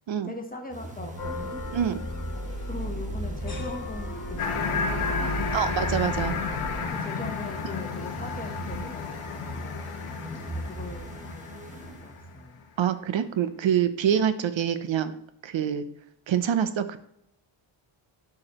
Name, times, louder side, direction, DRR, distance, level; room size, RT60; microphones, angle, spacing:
voice 1, 0.2-1.7 2.7-5.8 6.9-9.9 10.4-11.5 12.0-12.6, left 2 dB, 15° left, 4 dB, 0.9 m, -41 dB
sound 1, 0.7-12.5, equal, 15° right, 1.1 m, -39 dB
sound 2, 1.2-6.9, equal, 45° left, 1.4 m, -34 dB
sound 3, 4.4-12.4, left 5 dB, 80° left, 1.1 m, -33 dB
voice 2, 5.5-6.4 12.8-15.1 15.4-15.9 16.3-17.0, right 9 dB, 65° right, 11 dB, 0.7 m, -25 dB
11.5 x 4.9 x 2.9 m, 0.75 s
wide cardioid pair, 150°, 50 cm